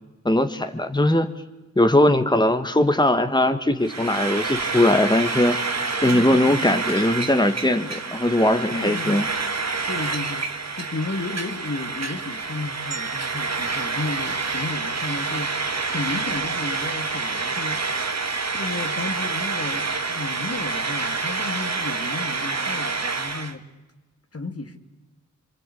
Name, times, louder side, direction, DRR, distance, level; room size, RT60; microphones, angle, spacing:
voice 1, 0.2-1.3 1.7-5.6 6.0-9.2, left 1 dB, 15° left, 1.8 m, -20 dB
Frying (food), 3.8-23.5, right 4 dB, 55° right, 2.1 m, -28 dB
voice 2, 5.9-6.7 7.8-7.9 8.7-9.4 9.9-15.6 15.9-17.9 18.5-23.6 24.3-24.8, left 3 dB, 50° left, 2.4 m, -33 dB
sound 1, 12.9-15.2, right 6 dB, 90° right, 2.3 m, -42 dB
26.5 x 24.0 x 8.5 m
cardioid pair, 40°, 31 cm